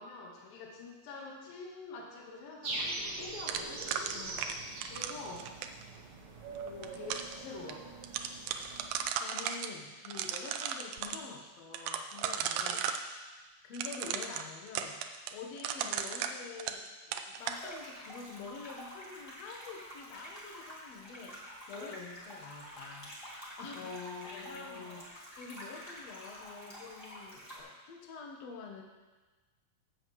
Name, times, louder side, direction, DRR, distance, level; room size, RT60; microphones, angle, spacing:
voice 1, 0.0-3.9 4.9-5.5 6.7-7.8 12.6-12.9 21.7-22.1 23.7-25.0, left 3 dB, 80° left, -1 dB, 3.1 m, -46 dB
sound 1, 2.6-9.0, right 2 dB, 55° right, 1.5 m, -42 dB
sound 2, 3.5-5.8 6.6-7.3 7.7-7.8 8.0-9.7 10.0-11.2 11.7-13.0 13.7-16.9 17.1-17.6, right 8 dB, 90° right, 1.7 m, -35 dB
voice 2, 4.1-4.7 8.8-12.9 13.6-15.0 15.3-21.9 22.2-23.1 23.6-23.9 24.2-28.8, left 4 dB, 65° left, 1 dB, 1.8 m, -47 dB
sound 3, 17.4-27.6, equal, 10° left, 1.5 m, -48 dB
15.5 x 7.5 x 3.1 m, 1.2 s
omnidirectional pair, 4.2 m